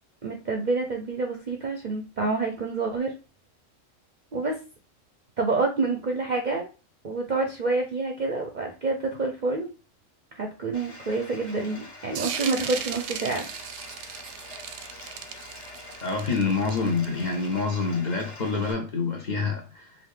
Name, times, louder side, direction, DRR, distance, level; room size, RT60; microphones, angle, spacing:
voice 1, 0.2-3.1 4.3-4.5 5.4-6.7 7.0-9.7 10.4-13.5, right 3 dB, 50° right, 0.6 m, -28 dB
Bathtub (filling or washing), 10.7-18.7, left 2 dB, 60° left, 1.4 m, -45 dB
sound 1, 12.2-17.5, right 8 dB, 85° right, 1.0 m, -36 dB
voice 2, 16.0-19.9, left 4 dB, 40° left, 0.8 m, -27 dB
5.0 x 2.5 x 3.7 m
omnidirectional pair, 1.3 m